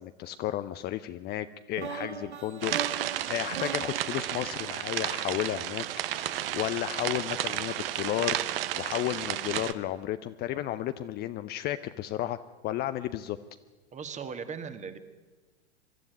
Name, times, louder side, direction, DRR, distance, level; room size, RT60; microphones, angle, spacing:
voice 1, 0.0-8.4 8.8-12.4 12.6-13.4, left 13 dB, 30° left, 11 dB, 0.6 m, -33 dB
sound 1, 1.8-5.7, right 6 dB, 75° right, 1.4 m, -40 dB
sound 2, 2.6-9.7, right 12 dB, 55° right, 1.1 m, -32 dB
voice 2, 13.9-15.0, right 6 dB, 20° right, 10 dB, 1.7 m, -38 dB
23.5 x 13.0 x 9.2 m, 1.3 s
figure-of-eight pair, 95°, 34 cm